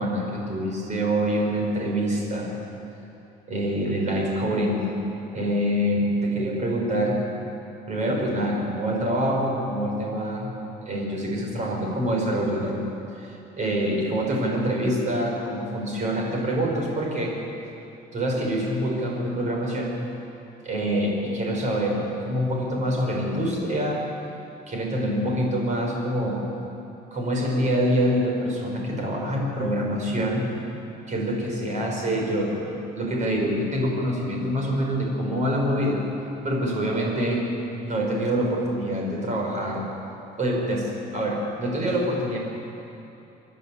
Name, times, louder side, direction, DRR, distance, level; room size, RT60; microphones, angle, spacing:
voice 1, 0.0-2.5 3.5-4.9 5.3-7.2 7.9-10.5 10.8-12.8 13.2-17.4 18.1-20.0 20.6-24.1 24.7-26.4 27.1-30.5 31.1-36.1 36.4-37.5 37.8-39.9 40.4-42.4, equal, 40° right, 0 dB, 5.7 m, -25 dB
27.5 x 11.0 x 8.7 m, 3.0 s
cardioid pair, 130°, 19 cm